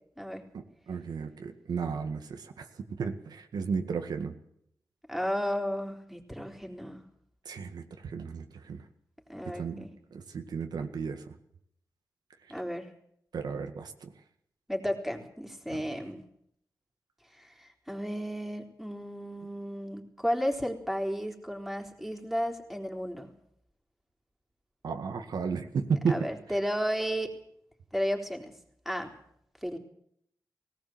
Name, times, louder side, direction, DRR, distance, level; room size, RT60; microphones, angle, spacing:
voice 1, 0.5-4.4 7.5-8.8 9.4-9.9 10.1-11.4 13.3-14.1 24.8-26.2, right 5 dB, 90° right, 5 dB, 1.8 m, -34 dB
voice 2, 5.1-7.0 9.3-9.9 12.5-12.9 14.7-16.2 17.4-23.3 26.1-27.3 27.9-28.5 28.9-29.1 29.6-29.8, equal, ahead, 2 dB, 3.6 m, -33 dB
18.5 x 18.0 x 7.8 m, 0.71 s
wide cardioid pair, 100°, 7 cm